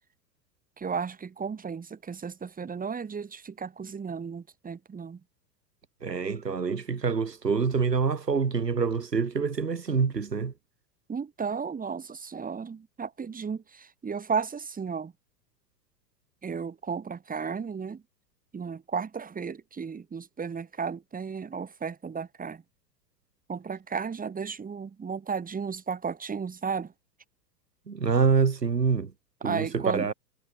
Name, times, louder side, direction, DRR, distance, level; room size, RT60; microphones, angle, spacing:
voice 1, 0.8-5.2 11.1-15.1 16.4-18.0 18.5-22.6 23.5-26.9 29.4-30.1, right 6 dB, 15° right, 7.7 m, -34 dB
voice 2, 6.0-10.5 27.9-29.1 29.4-30.1, right 5 dB, 90° right, 2.9 m, -26 dB
figure-of-eight pair, 95°, 48 cm